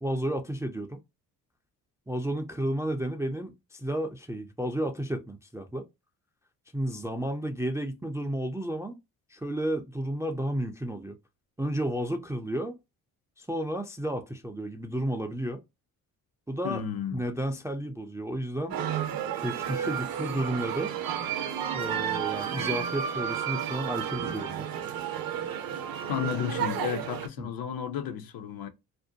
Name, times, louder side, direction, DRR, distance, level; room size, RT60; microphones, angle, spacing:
voice 1, 0.0-1.0 2.1-5.8 6.7-9.0 9.3-11.2 11.6-12.8 13.4-15.6 16.5-16.8 17.1-18.8 19.4-20.9 21.7-24.7 27.4-27.5, right 1 dB, 10° right, 0.3 m, -32 dB
voice 2, 16.6-17.2 22.5-22.7 26.1-28.7, left 8 dB, 55° left, 0.6 m, -33 dB
sound 1, 18.7-27.3, right 9 dB, 55° right, 0.6 m, -32 dB
2.5 x 2.1 x 2.6 m
supercardioid pair, 55°, 42 cm